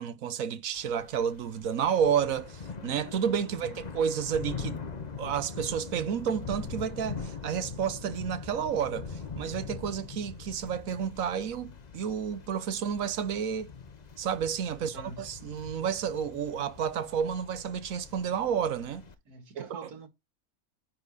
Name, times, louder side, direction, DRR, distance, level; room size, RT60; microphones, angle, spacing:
voice 1, 0.0-4.8 5.2-13.7 14.2-19.0 19.6-19.9, right 8 dB, 65° right, 1.2 m, -31 dB
Thunder / Rain, 0.7-19.1, left 5 dB, 35° left, 0.9 m, -42 dB
voice 2, 14.7-15.2 19.3-20.1, right 4 dB, 85° right, 2.2 m, -45 dB
9.8 x 4.6 x 4.0 m
omnidirectional pair, 1.6 m